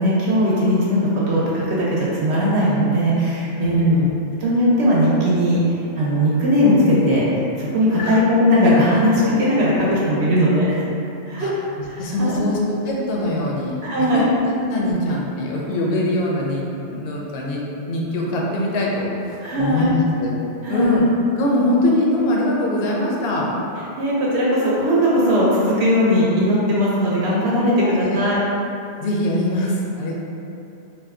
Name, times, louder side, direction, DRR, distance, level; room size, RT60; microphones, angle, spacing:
voice 1, 0.0-3.8 4.4-10.8 11.3-11.5 11.9-12.4 13.8-14.3 19.4-19.9 20.6-21.0 24.0-28.4, equal, 70° right, -6 dB, 0.9 m, -18 dB
voice 2, 3.6-4.1 8.0-8.2 11.4-11.5 11.8-12.6 12.8-13.7 14.1-14.2 14.6-20.4 20.7-21.0 21.4-23.5 27.8-28.2 29.0-30.1, left 1 dB, 65° left, -3 dB, 0.7 m, -22 dB
2.6 x 2.2 x 3.5 m, 2.7 s
omnidirectional pair, 1.2 m